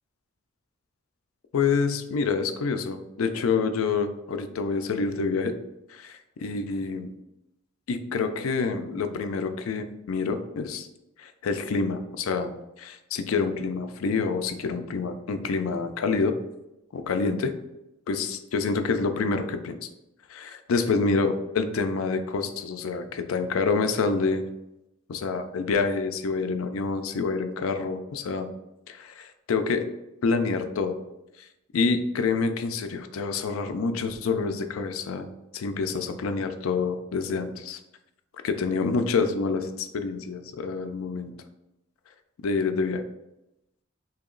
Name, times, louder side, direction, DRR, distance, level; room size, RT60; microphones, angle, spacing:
voice 1, 1.5-5.6 5.9-7.1 7.9-10.9 11.2-12.5 12.8-16.4 16.9-17.5 18.1-19.8 20.3-24.4 25.1-28.5 28.9-29.9 30.2-31.0 31.4-31.5 31.7-35.3 35.5-37.8 38.4-41.3 42.4-43.0, left 4 dB, 90° left, 8 dB, 0.4 m, -27 dB
2.9 x 2.8 x 3.7 m, 0.91 s
head